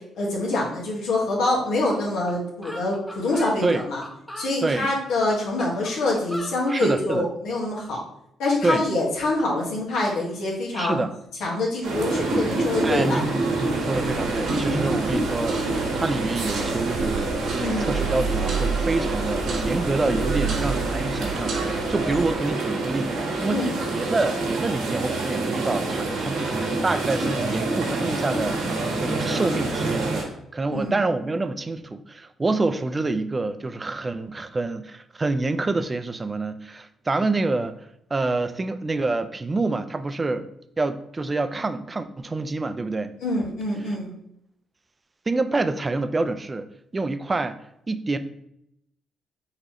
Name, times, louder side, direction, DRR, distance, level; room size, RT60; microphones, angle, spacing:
voice 1, 0.2-4.0 4.4-8.0 8.4-11.0 11.4-13.2 17.6-17.9 23.5-23.9 30.7-30.9 43.2-44.1, left 2 dB, 85° left, -3 dB, 1.4 m, -25 dB
sound 1, 1.9-2.0 2.3-2.4 2.6-4.5 5.1-7.0, equal, 5° left, 0.7 m, -39 dB
voice 2, 4.6-4.9 6.7-7.3 8.6-8.8 10.7-11.1 12.8-28.6 29.0-37.8 38.1-40.5 40.8-43.1 45.3-46.7 46.9-47.6 47.9-48.2, right 3 dB, 25° right, 10 dB, 0.3 m, -27 dB
sound 2, 11.8-30.2, right 2 dB, 90° right, 1.2 m, -27 dB
sound 3, 13.9-22.3, right 4 dB, 65° right, 0.8 m, -31 dB
5.4 x 3.0 x 3.0 m, 0.75 s
cardioid pair, 90°, 0 cm